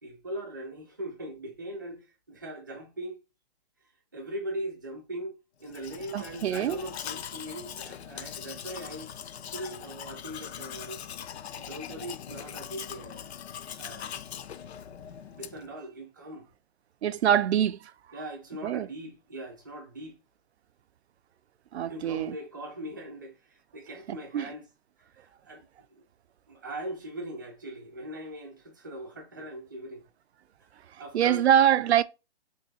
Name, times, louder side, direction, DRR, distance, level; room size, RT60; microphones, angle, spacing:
voice 1, 0.0-3.2 4.1-5.3 5.6-9.1 9.5-11.0 11.6-13.3 13.8-14.2 15.4-16.5 18.1-20.2 21.9-24.6 25.0-26.0 26.5-30.0 31.0-31.5, right 1 dB, 20° right, 0.5 m, -40 dB
Domestic sounds home sounds, 5.6-15.7, left 9 dB, 80° left, 0.5 m, -41 dB
voice 2, 6.1-6.8 17.0-17.9 18.6-18.9 21.7-22.4 24.1-24.5 31.1-32.0, right 10 dB, 90° right, 0.5 m, -24 dB
3.2 x 2.7 x 4.0 m
hypercardioid pair, 180°, 32 cm